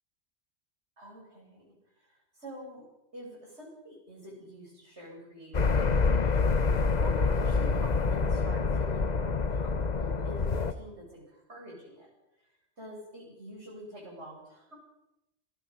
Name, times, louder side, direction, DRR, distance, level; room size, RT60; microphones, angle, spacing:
voice 1, 1.0-2.8 3.1-12.1 12.4-12.5 12.8-14.8, equal, 80° right, -2 dB, 8.6 m, -47 dB
sound 1, 5.5-10.7, left 4 dB, 40° left, 1.1 m, -26 dB
26.5 x 20.5 x 5.8 m, 0.90 s
omnidirectional pair, 1.1 m